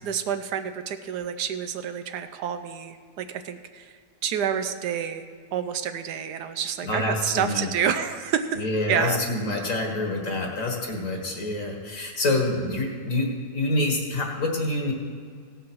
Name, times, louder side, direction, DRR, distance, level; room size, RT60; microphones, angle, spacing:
voice 1, 0.0-3.9 4.2-8.6 8.9-9.2 10.2-10.5, right 8 dB, 75° right, 9 dB, 1.2 m, -29 dB
voice 2, 6.8-7.7 8.6-13.3 13.5-14.9, left 2 dB, 50° left, 1 dB, 2.0 m, -27 dB
16.5 x 5.7 x 6.1 m, 2.1 s
omnidirectional pair, 1.8 m